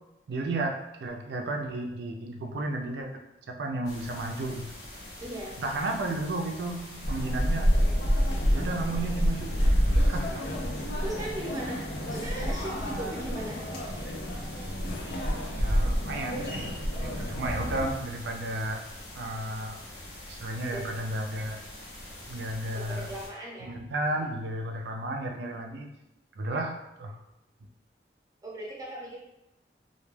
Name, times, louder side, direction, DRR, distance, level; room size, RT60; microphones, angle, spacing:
voice 1, 0.3-4.7 5.6-7.7 8.5-9.7 9.9-10.4 15.6-18.9 19.1-19.8 20.3-21.6 22.3-23.1 23.6-25.9 26.4-27.2, right 2 dB, 70° right, 3 dB, 0.4 m, -33 dB
sound 1, 3.8-23.3, left 1 dB, 90° left, 0.8 m, -45 dB
voice 2, 5.2-5.6 11.0-11.8 12.1-13.6 20.7-20.9 22.7-23.7 28.4-29.2, right 1 dB, 20° right, -4 dB, 0.6 m, -37 dB
sound 2, 7.0-17.9, equal, 65° left, 0.5 m, -28 dB
2.2 x 2.2 x 3.1 m, 0.90 s
head